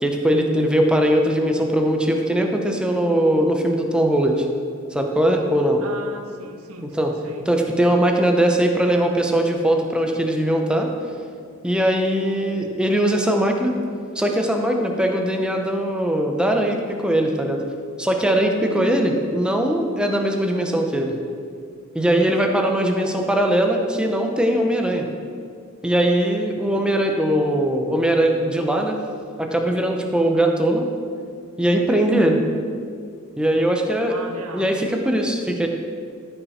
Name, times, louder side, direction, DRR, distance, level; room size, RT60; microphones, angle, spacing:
voice 1, 0.0-4.5 4.9-5.8 6.8-10.9 11.6-13.8 14.2-17.6 18.0-21.2 21.9-25.1 25.8-29.0 29.4-30.9 31.6-32.4 33.4-34.2 34.5-35.7, right 1 dB, 5° right, 2 dB, 0.8 m, -20 dB
voice 2, 5.8-7.8 23.0-23.3 34.1-34.8, right 2 dB, 80° right, 6 dB, 0.9 m, -38 dB
14.0 x 5.6 x 4.3 m, 2.2 s
head